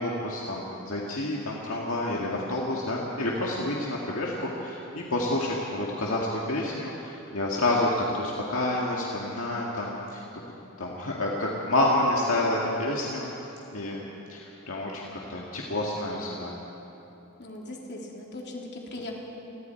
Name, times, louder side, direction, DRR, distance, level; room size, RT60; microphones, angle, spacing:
voice 1, 0.0-10.4 10.8-13.3 13.7-16.6, left 1 dB, 70° left, -3 dB, 2.1 m, -29 dB
voice 2, 17.4-19.1, left 2 dB, 50° left, -1 dB, 3.3 m, -39 dB
29.0 x 21.0 x 4.6 m, 3.0 s
head